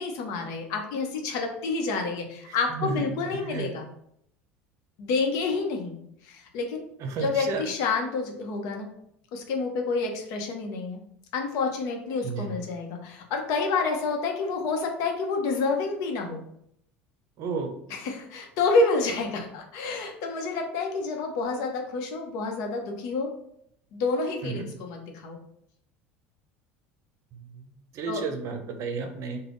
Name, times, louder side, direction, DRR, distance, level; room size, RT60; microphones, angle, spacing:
voice 1, 0.0-3.9 5.0-5.9 6.2-6.8 7.2-8.9 9.3-11.0 11.3-16.4 17.9-23.3 23.9-25.4 28.1-28.2, left 3 dB, 65° left, 3 dB, 0.8 m, -28 dB
voice 2, 2.5-3.0 3.3-3.7 7.0-7.7 12.2-12.5 17.4-17.7 24.4-24.7 27.3-27.7 27.9-29.4, right 4 dB, 55° right, 6 dB, 0.6 m, -32 dB
3.3 x 2.2 x 3.8 m, 0.71 s
hypercardioid pair, 90°, 6 cm